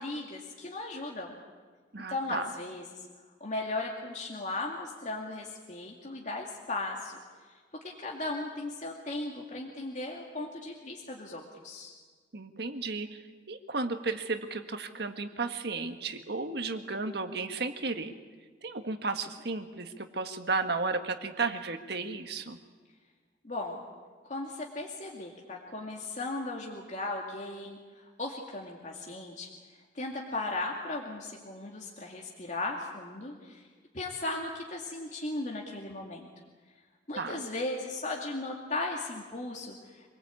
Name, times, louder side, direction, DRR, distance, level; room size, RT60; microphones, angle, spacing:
voice 1, 0.0-1.3 2.1-2.9 3.4-7.2 7.8-11.9 23.4-23.8 24.2-29.5 29.7-33.7 33.9-36.3 37.1-40.1, left 2 dB, 45° left, -1 dB, 2.4 m, -37 dB
voice 2, 1.9-2.5 12.3-13.2 13.5-18.1 18.6-22.6 37.2-37.4, right 3 dB, 65° right, 7 dB, 1.7 m, -33 dB
26.5 x 19.5 x 8.6 m, 1.5 s
head